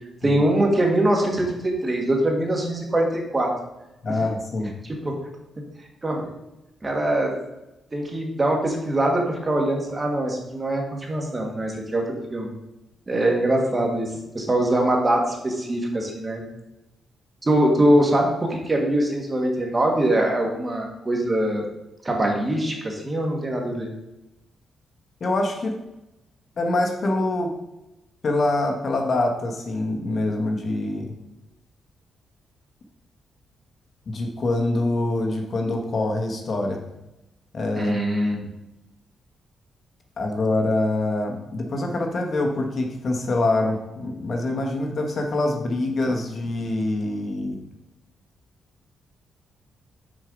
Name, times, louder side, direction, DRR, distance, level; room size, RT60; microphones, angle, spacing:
voice 1, 0.2-3.5 4.8-5.1 6.0-6.3 6.8-7.3 7.9-12.5 13.1-16.4 17.4-21.7 22.0-23.9 37.8-38.5, right 1 dB, 20° right, 1 dB, 1.5 m, -23 dB
voice 2, 4.0-4.7 25.2-25.7 26.6-27.5 28.2-31.1 34.1-36.8 37.5-37.9 40.2-47.6, left 2 dB, 45° left, 2 dB, 1.1 m, -25 dB
6.3 x 4.7 x 5.1 m, 0.94 s
cardioid pair, 120°, 0 cm